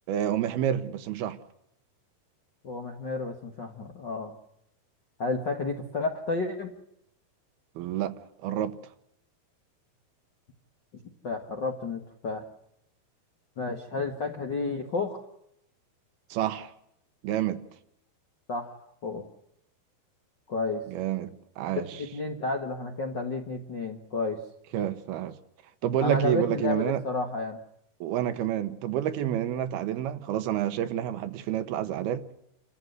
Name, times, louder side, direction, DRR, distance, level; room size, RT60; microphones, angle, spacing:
voice 1, 0.1-1.4 7.8-8.1 8.4-8.8 16.3-16.7 17.2-17.6 20.9-21.9 24.7-25.4 25.8-27.0 28.0-32.2, right 11 dB, 75° right, 2.9 m, -28 dB
voice 2, 2.6-4.3 5.2-6.7 11.2-12.4 13.6-15.2 18.5-18.7 19.0-19.2 20.5-20.9 22.0-24.4 26.0-27.6, left 3 dB, 55° left, 1.2 m, -31 dB
28.5 x 13.5 x 7.9 m
omnidirectional pair, 4.6 m